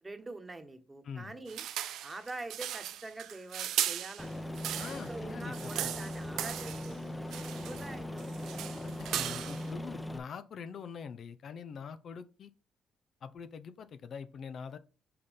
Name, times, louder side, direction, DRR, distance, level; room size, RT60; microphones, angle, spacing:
voice 1, 0.0-1.7 2.0-4.3 4.8-7.3 7.6-8.7 9.5-9.7, right 2 dB, 20° right, 7 dB, 1.2 m, -45 dB
voice 2, 1.0-1.3 4.8-5.9 8.8-12.5 13.2-14.8, left 6 dB, 60° left, 12 dB, 0.6 m, -44 dB
sound 1, 1.5-5.1 5.4-6.9 7.3-7.9 8.2-9.7, right 11 dB, 85° right, 0.5 m, -37 dB
Aircraft, 4.2-10.2, left 1 dB, 10° left, 0.8 m, -40 dB
5.5 x 4.1 x 5.3 m, 0.35 s
cardioid pair, 90°, 0 cm